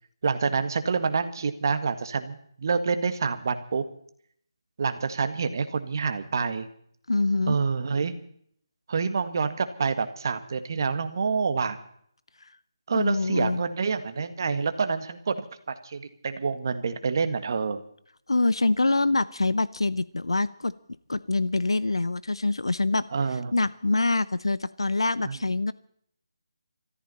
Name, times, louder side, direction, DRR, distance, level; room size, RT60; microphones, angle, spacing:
voice 1, 0.2-3.8 4.8-6.7 7.5-8.2 8.9-11.8 12.9-17.8 23.1-23.5 25.2-25.4, right 5 dB, 50° right, 9 dB, 1.7 m, -27 dB
voice 2, 7.1-7.6 12.9-13.6 18.3-20.7 21.1-23.0 23.5-25.7, left 2 dB, 85° left, 17 dB, 0.7 m, -25 dB
23.0 x 14.5 x 4.2 m, 0.65 s
figure-of-eight pair, 160°, 3 cm